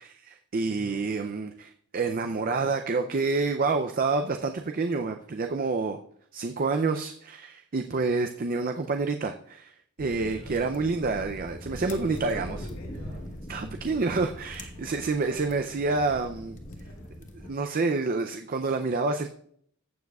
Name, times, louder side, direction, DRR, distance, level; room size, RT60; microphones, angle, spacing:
voice 1, 0.0-6.0 6.3-9.7 10.0-12.6 13.5-16.6 17.4-19.3, right 3 dB, 40° right, 6 dB, 0.5 m, -28 dB
voice 2, 0.6-1.3 10.2-10.6 11.8-13.2 15.0-16.4 16.7-17.1, left 1 dB, 75° left, -1 dB, 4.4 m, -47 dB
sound 1, 10.0-17.5, equal, 35° left, 1.1 m, -41 dB
15.5 x 7.1 x 2.3 m, 0.64 s
head